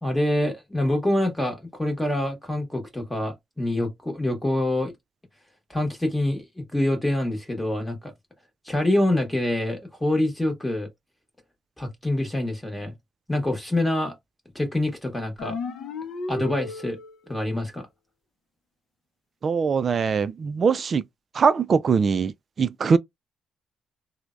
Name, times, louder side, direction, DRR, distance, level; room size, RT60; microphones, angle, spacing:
voice 1, 0.0-4.9 5.7-8.1 8.6-10.9 11.8-12.9 13.3-14.1 14.5-15.6 16.3-17.0 17.3-17.9, left 1 dB, 10° left, 1.0 m, -26 dB
sound 1, 15.4-17.4, left 3 dB, 70° left, 0.6 m, -34 dB
voice 2, 19.4-21.0 21.3-23.0, right 5 dB, 45° right, 0.3 m, -22 dB
3.2 x 2.1 x 2.4 m
cardioid pair, 90°, 0 cm